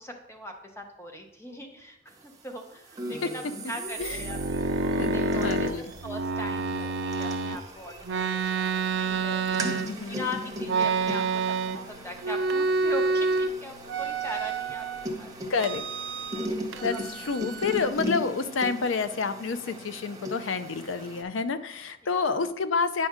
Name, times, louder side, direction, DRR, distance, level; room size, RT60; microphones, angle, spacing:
voice 1, 0.0-7.9 8.3-14.9 15.2-15.3 16.7-17.0 22.0-22.5, left 1 dB, 15° left, 3 dB, 0.9 m, -41 dB
sound 1, 2.9-21.2, right 1 dB, 20° right, 0.8 m, -38 dB
sound 2, 4.0-7.6 8.0-10.2 10.6-11.9 12.2-13.5 13.9-15.0 15.6-16.5 16.7-17.9, right 4 dB, 65° right, 0.5 m, -28 dB
voice 2, 5.0-5.9 9.6-10.3 15.5-15.8 16.8-23.1, left 4 dB, 75° left, 11 dB, 0.5 m, -29 dB
9.2 x 5.2 x 3.7 m, 0.79 s
head